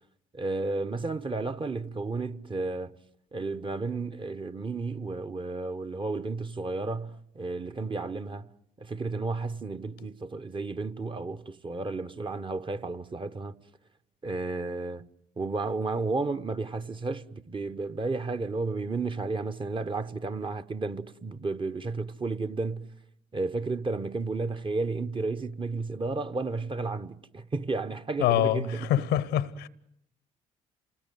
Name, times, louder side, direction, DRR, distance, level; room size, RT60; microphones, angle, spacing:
voice 1, 0.3-3.0 3.3-8.5 8.8-13.5 14.2-15.1 15.4-22.9 23.3-29.0, right 3 dB, 30° right, 1.1 m, -32 dB
voice 2, 28.2-29.7, left 12 dB, 75° left, 0.9 m, -25 dB
28.5 x 19.5 x 9.3 m
hypercardioid pair, 50°, 18 cm